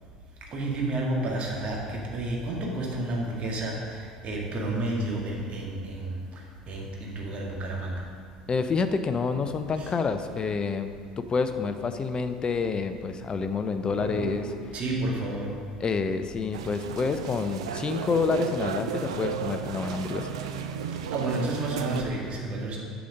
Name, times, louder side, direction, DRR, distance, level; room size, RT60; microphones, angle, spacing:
voice 1, 0.5-3.7 4.2-6.2 6.7-8.0 9.8-9.9 14.7-15.5 21.1-22.8, right 2 dB, 40° right, -2 dB, 1.8 m, -30 dB
voice 2, 8.5-14.5 15.8-20.3, left 4 dB, 30° left, 9 dB, 0.6 m, -28 dB
sound 1, 13.8-15.3, right 1 dB, 85° right, 1.2 m, -38 dB
sound 2, 16.5-22.0, right 7 dB, 70° right, 0.5 m, -34 dB
8.4 x 6.0 x 5.2 m, 2.1 s
figure-of-eight pair, 65°, 3 cm